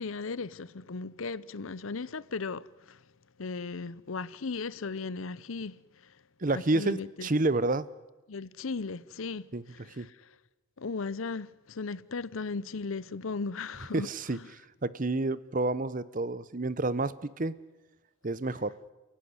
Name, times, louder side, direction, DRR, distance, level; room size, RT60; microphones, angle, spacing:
voice 1, 0.0-3.0 3.4-6.2 6.5-7.3 8.3-10.3 10.8-14.5, left 4 dB, 75° left, 0.7 m, -37 dB
voice 2, 6.4-7.9 9.5-9.6 10.0-10.1 13.9-14.4 14.8-17.5 18.2-18.7, right 2 dB, 40° right, 0.8 m, -29 dB
30.0 x 16.0 x 9.7 m
head